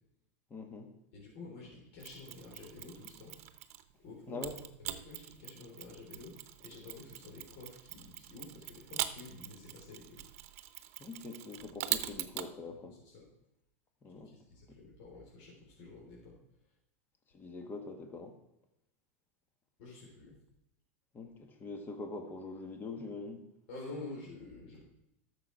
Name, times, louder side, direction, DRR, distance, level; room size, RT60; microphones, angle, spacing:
voice 1, 0.5-0.9 4.3-4.6 11.0-13.0 14.0-14.3 14.7-14.8 17.3-18.4 21.1-23.5, left 3 dB, 25° left, 5 dB, 1.6 m, -44 dB
voice 2, 1.1-3.3 4.0-4.5 4.8-10.2 13.1-13.2 14.2-16.4 19.8-20.4 23.7-24.8, left 3 dB, 60° left, -4 dB, 4.0 m, -49 dB
Mechanisms, 2.0-3.9 4.4-12.5, right 14 dB, 65° right, 0.8 m, -42 dB
12.5 x 6.9 x 4.8 m, 0.86 s
supercardioid pair, 120°, 8 cm